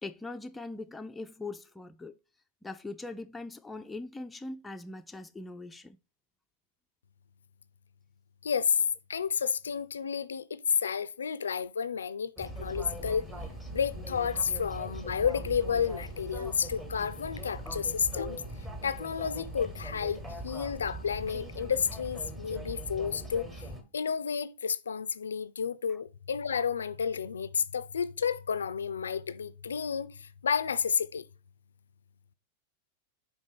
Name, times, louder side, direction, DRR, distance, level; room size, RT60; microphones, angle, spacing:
voice 1, 0.0-2.1 2.6-6.0 25.9-26.0, left 2 dB, 10° left, 0.4 m, -41 dB
voice 2, 8.4-8.8 9.1-13.3 13.7-18.4 18.8-23.5 23.9-31.2, left 7 dB, 70° left, 0.4 m, -31 dB
sound 1, 12.4-23.8, right 1 dB, 15° right, 1.2 m, -41 dB
sound 2, 12.8-21.5, right 1 dB, 60° right, 0.9 m, -51 dB
5.2 x 3.6 x 5.0 m
figure-of-eight pair, 90°, 0 cm